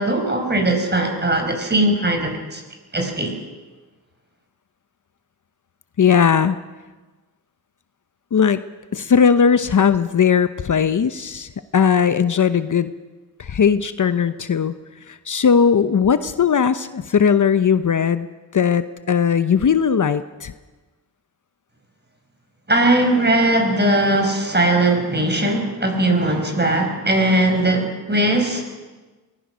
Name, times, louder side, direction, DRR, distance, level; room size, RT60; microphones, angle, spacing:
voice 1, 0.0-2.6 2.9-3.3 22.7-28.7, right 1 dB, 25° right, 4 dB, 5.5 m, -19 dB
voice 2, 6.0-6.6 8.3-8.6 8.9-12.9 13.4-14.7 15.1-18.3 18.5-20.5, left 7 dB, 50° left, 12 dB, 0.9 m, -18 dB
23.5 x 19.0 x 6.2 m, 1.2 s
cardioid pair, 75°, 39 cm